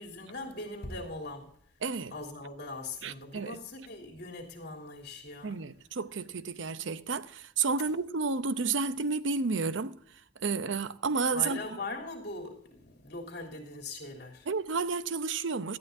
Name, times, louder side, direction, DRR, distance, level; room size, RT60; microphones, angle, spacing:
voice 1, 0.0-1.7 2.1-5.6 11.3-14.5, left 2 dB, 60° left, 3.3 m, -41 dB
voice 2, 1.8-2.1 3.0-3.6 5.4-10.0 10.4-11.6 14.5-15.8, right 4 dB, 85° right, 0.7 m, -31 dB
18.0 x 13.5 x 2.7 m
head